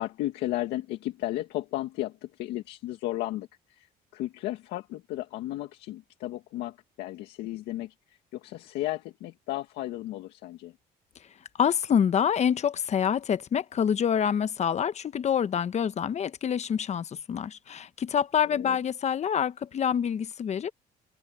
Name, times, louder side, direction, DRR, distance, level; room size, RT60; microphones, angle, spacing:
voice 1, 0.0-3.9 4.1-10.7 18.5-18.8, left 15 dB, 90° left, 1.8 m, -34 dB
voice 2, 11.6-20.7, left 8 dB, 40° left, 0.9 m, -26 dB
open air
cardioid pair, 110°, 17 cm